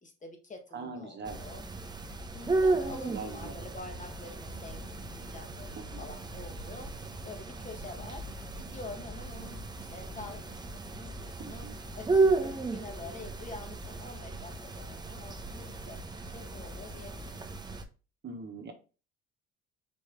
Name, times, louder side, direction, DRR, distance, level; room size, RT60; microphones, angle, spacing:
voice 1, 0.0-1.6 2.3-8.3 8.6-11.7 11.9-17.4, left 3 dB, 25° left, 4 dB, 1.3 m, -47 dB
voice 2, 0.7-1.4 3.1-3.6 5.8-6.0 11.4-11.8 18.2-18.7, right 4 dB, 40° right, 5 dB, 1.1 m, -41 dB
sound 1, 1.2-17.8, right 3 dB, 15° right, 0.6 m, -34 dB
sound 2, 2.4-10.7, left 1 dB, 90° left, 1.8 m, -57 dB
4.3 x 3.2 x 3.4 m, 0.34 s
supercardioid pair, 80°, 29 cm